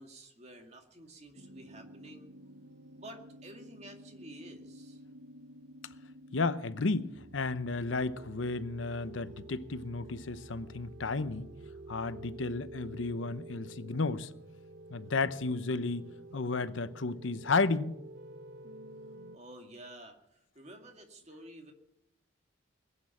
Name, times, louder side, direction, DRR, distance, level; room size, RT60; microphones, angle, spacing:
voice 1, 0.0-2.3 2.9-5.0 19.3-21.7, right 1 dB, 35° right, 2.2 m, -51 dB
sound 1, 1.3-19.4, right 2 dB, 60° right, 0.9 m, -50 dB
voice 2, 6.3-11.5 11.9-14.3 14.9-17.9, left 3 dB, 90° left, 0.8 m, -33 dB
20.5 x 8.7 x 7.2 m
head